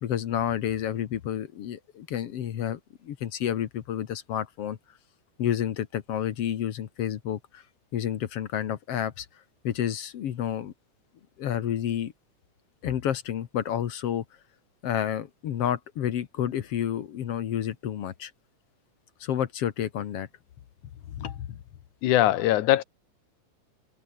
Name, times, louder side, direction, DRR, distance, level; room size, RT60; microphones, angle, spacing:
voice 1, 0.0-4.8 5.4-7.6 7.9-9.3 9.6-10.7 11.4-12.1 12.8-14.2 14.8-18.3 19.2-20.3 21.1-21.6, left 10 dB, 60° left, 2.0 m, -30 dB
voice 2, 22.0-22.8, left 14 dB, 80° left, 2.3 m, -21 dB
omnidirectional pair, 3.6 m